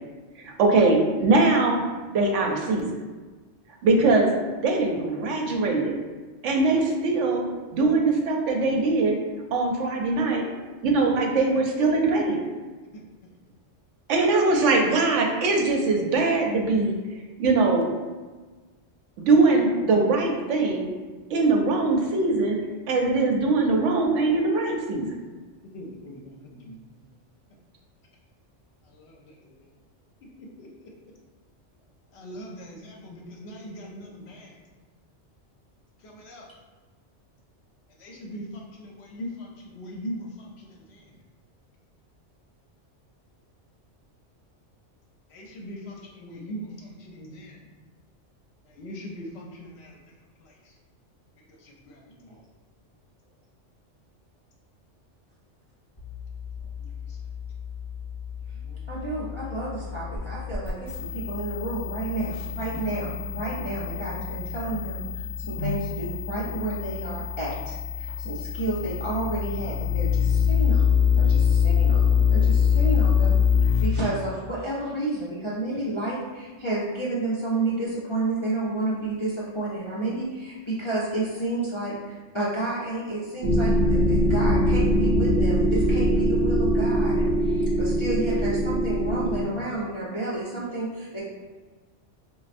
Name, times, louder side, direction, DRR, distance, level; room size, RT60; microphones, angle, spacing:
voice 1, 0.4-3.0 3.8-6.0 6.4-9.2 9.5-10.5 10.8-12.4 14.1-16.9 17.4-17.9 19.2-20.9 21.3-22.6 22.9-25.2, right 3 dB, 80° right, 1 dB, 0.9 m, -22 dB
voice 2, 25.7-27.0 28.8-29.7 30.6-30.9 32.1-34.5 36.0-36.5 38.0-41.1 45.3-47.6 48.6-50.0 50.4-50.7 51.5-52.4 57.1-57.2 58.5-58.8, equal, 65° left, -1 dB, 0.8 m, -41 dB
sound 1, 56.0-73.9, left 7 dB, 25° left, 0.9 m, -25 dB
voice 3, 58.9-91.2, right 2 dB, 45° left, -8 dB, 0.4 m, -31 dB
sound 2, 83.4-89.4, equal, 55° right, 0.6 m, -22 dB
4.1 x 2.3 x 2.5 m, 1.3 s
omnidirectional pair, 1.2 m